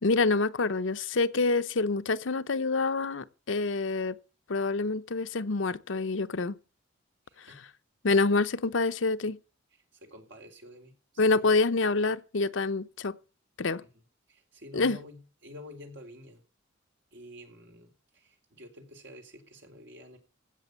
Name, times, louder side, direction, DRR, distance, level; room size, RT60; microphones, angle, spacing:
voice 1, 0.0-4.2 4.5-6.6 8.0-9.4 11.2-13.1 13.6-13.8 14.7-15.0, left 3 dB, 70° left, 0.8 m, -27 dB
voice 2, 7.3-7.7 9.7-11.5 13.8-14.0 14.3-16.4 17.1-20.2, left 1 dB, 65° right, 3.8 m, -49 dB
16.0 x 6.8 x 8.3 m
head